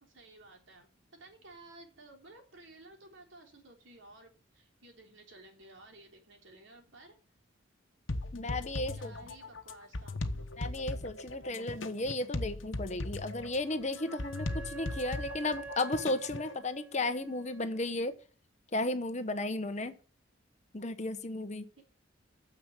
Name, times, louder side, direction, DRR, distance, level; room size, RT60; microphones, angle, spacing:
voice 1, 0.0-7.2 8.9-10.4 21.8-21.9, right 2 dB, 70° right, 3 dB, 3.5 m, -55 dB
sound 1, 8.1-16.5, left 2 dB, 75° left, 1.1 m, -38 dB
voice 2, 8.3-9.1 10.6-18.1 18.7-19.9 20.7-21.6, left 2 dB, 35° left, 10 dB, 1.1 m, -34 dB
Wind instrument woodwind instrument, 13.3-17.9, right 4 dB, 5° right, 0.5 m, -48 dB
9.6 x 7.0 x 8.1 m, 0.37 s
head